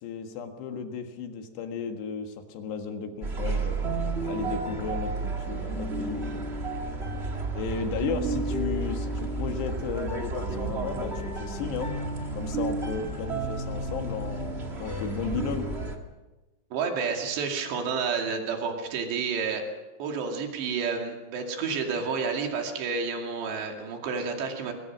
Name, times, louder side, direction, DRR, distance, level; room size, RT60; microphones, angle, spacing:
voice 1, 0.0-3.9 4.2-6.4 7.5-12.0 12.3-15.7, left 5 dB, 80° left, 5 dB, 3.9 m, -34 dB
sound 1, 3.2-15.9, right 3 dB, 30° right, 1.1 m, -31 dB
voice 2, 16.7-19.6 20.0-24.7, right 5 dB, 90° right, 2 dB, 4.7 m, -30 dB
23.0 x 21.5 x 6.2 m, 1.1 s
omnidirectional pair, 4.8 m